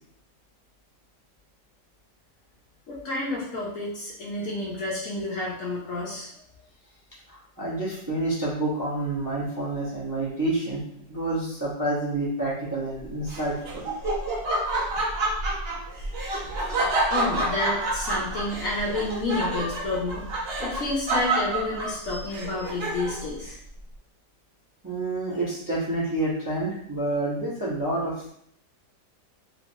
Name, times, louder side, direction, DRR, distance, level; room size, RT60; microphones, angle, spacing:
voice 1, 2.9-6.3 16.9-23.5, left 2 dB, 60° left, -4 dB, 0.9 m, -30 dB
voice 2, 7.3-10.8 11.1-13.9 24.8-28.3, right 2 dB, 20° right, -8 dB, 0.5 m, -28 dB
Laughter, 13.3-23.3, right 2 dB, 60° right, 0.6 m, -28 dB
3.2 x 3.1 x 2.6 m, 0.69 s
omnidirectional pair, 1.9 m